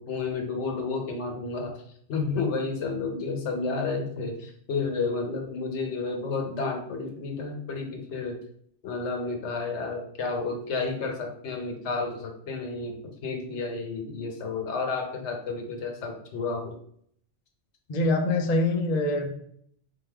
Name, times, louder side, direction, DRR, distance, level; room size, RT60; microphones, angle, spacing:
voice 1, 0.0-1.8 2.1-8.4 8.8-12.9 13.2-16.8, left 4 dB, 70° left, 3 dB, 1.1 m, -31 dB
voice 2, 17.9-19.3, left 2 dB, 50° left, 3 dB, 0.5 m, -24 dB
3.9 x 3.5 x 3.3 m, 0.67 s
omnidirectional pair, 1.2 m